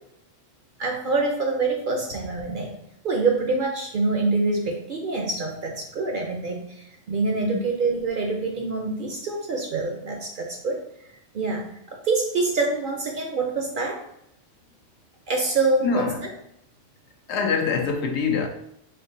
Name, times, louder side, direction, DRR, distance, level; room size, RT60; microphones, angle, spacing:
voice 1, 0.8-2.8 3.0-10.8 11.3-14.0 15.3-16.1, right 3 dB, 55° right, 0.6 m, -25 dB
voice 2, 15.8-16.2 17.3-18.5, left 5 dB, 70° left, 0.8 m, -24 dB
4.4 x 3.5 x 2.6 m
omnidirectional pair, 1.2 m